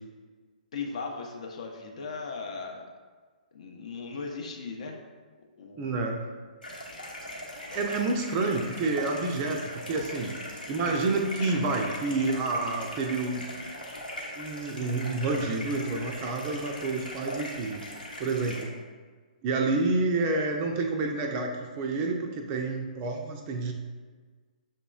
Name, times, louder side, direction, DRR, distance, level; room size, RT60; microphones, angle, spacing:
voice 1, 0.7-2.9 3.5-5.0 5.6-6.0 7.7-8.0 11.4-12.0, left 4 dB, 50° left, 1 dB, 0.6 m, -38 dB
voice 2, 5.8-6.2 7.7-13.5 14.4-17.8 18.2-18.7 19.4-23.7, right 3 dB, 25° right, 2 dB, 0.4 m, -29 dB
sound 1, 6.6-18.6, left 1 dB, 75° left, 0.9 m, -40 dB
6.4 x 2.9 x 2.3 m, 1.5 s
figure-of-eight pair, 125°, 5 cm